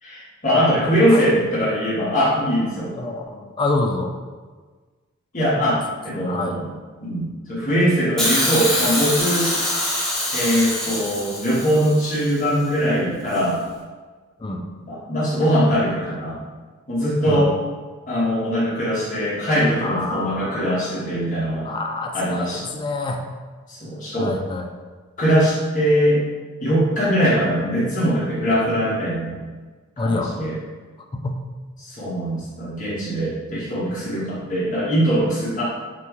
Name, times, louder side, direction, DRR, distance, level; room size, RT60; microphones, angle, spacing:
voice 1, 0.0-2.9 5.3-6.7 7.0-9.5 10.3-13.6 14.8-16.4 16.9-17.5 18.1-21.7 22.1-22.6 23.7-24.3 25.2-26.2 26.6-29.4 30.0-30.6 31.8-35.6, equal, 40° left, -9 dB, 1.3 m, -21 dB
voice 2, 0.8-1.3 2.9-4.1 5.6-5.7 6.2-6.6 14.4-14.6 17.3-17.5 19.8-20.7 21.6-23.3 24.2-24.7 30.0-30.3 31.1-31.4, left 2 dB, 25° left, 3 dB, 0.4 m, -27 dB
Hiss, 8.2-12.3 13.3-13.4, left 1 dB, ahead, 0.8 m, -24 dB
5.9 x 2.3 x 3.1 m, 1.4 s
head